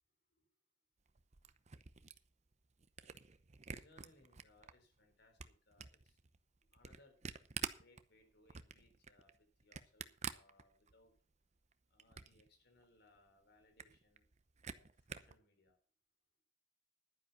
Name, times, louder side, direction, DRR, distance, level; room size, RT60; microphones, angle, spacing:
Camera, 1.1-4.7 5.1-11.2 11.6-12.5 12.8-12.9 13.2-13.3 13.6-15.4, right 6 dB, 40° right, 0.8 m, -48 dB
voice 1, 3.7-6.2 6.7-7.2 7.6-11.1 11.9-14.2 14.7-15.8, left 2 dB, 60° left, 6 dB, 4.0 m, -69 dB
11.5 x 9.9 x 5.6 m, 0.41 s
head